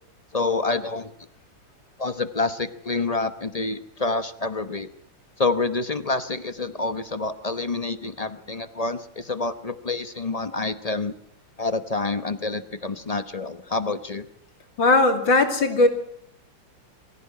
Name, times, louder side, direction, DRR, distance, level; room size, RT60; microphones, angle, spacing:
voice 1, 0.3-1.1 2.0-4.9 5.4-11.1 11.6-14.3, left 3 dB, 30° left, 11 dB, 0.7 m, -27 dB
voice 2, 14.8-15.9, left 2 dB, 90° left, 5 dB, 3.5 m, -18 dB
24.0 x 15.5 x 9.7 m, 0.71 s
omnidirectional pair, 2.0 m